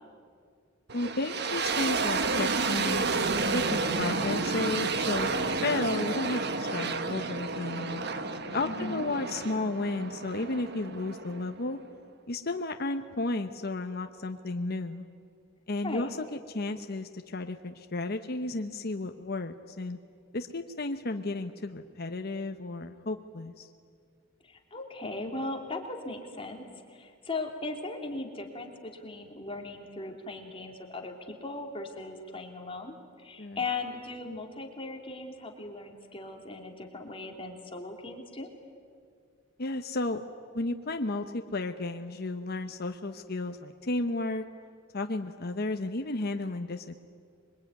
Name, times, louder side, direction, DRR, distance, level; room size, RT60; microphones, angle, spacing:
voice 1, 0.9-8.0 8.5-11.8 12.3-15.1 15.7-20.0 20.3-23.7 33.4-33.6 39.6-40.2 40.5-44.4 44.9-47.0, left 2 dB, 50° left, 6 dB, 1.0 m, -33 dB
sound 1, 0.9-11.8, right 4 dB, 60° right, 1.4 m, -31 dB
voice 2, 8.6-9.0 15.8-16.1 24.5-33.0 33.2-38.5, left 2 dB, 30° left, 2 dB, 2.9 m, -38 dB
26.5 x 22.5 x 9.5 m, 2.2 s
head